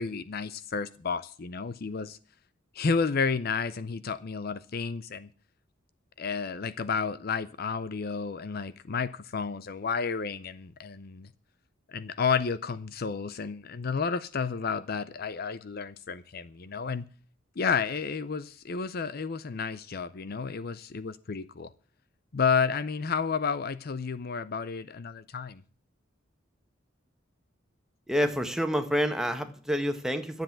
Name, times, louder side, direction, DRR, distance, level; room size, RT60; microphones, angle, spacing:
voice 1, 0.0-2.2 2.7-5.3 6.2-11.3 11.9-17.1 17.6-21.7 22.3-25.6, left 5 dB, 50° left, 15 dB, 0.6 m, -31 dB
voice 2, 28.1-30.4, equal, 5° right, 7 dB, 1.4 m, -28 dB
12.0 x 7.9 x 8.8 m, 0.41 s
head